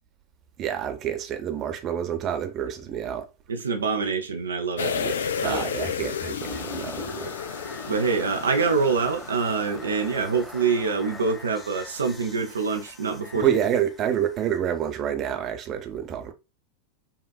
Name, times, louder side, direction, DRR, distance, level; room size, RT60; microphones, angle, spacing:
voice 1, 0.6-3.3 4.9-7.3 13.3-16.3, right 9 dB, 30° right, 0.7 m, -28 dB
voice 2, 3.5-4.9 5.4-5.6 7.9-13.5, right 5 dB, 70° right, 0.5 m, -25 dB
sound 1, 4.8-9.6 9.9-10.0, left 7 dB, 65° left, 0.4 m, -32 dB
sound 2, 6.4-15.4, left 2 dB, 10° left, 0.6 m, -43 dB
5.4 x 2.4 x 2.3 m
figure-of-eight pair, 90°, 0 cm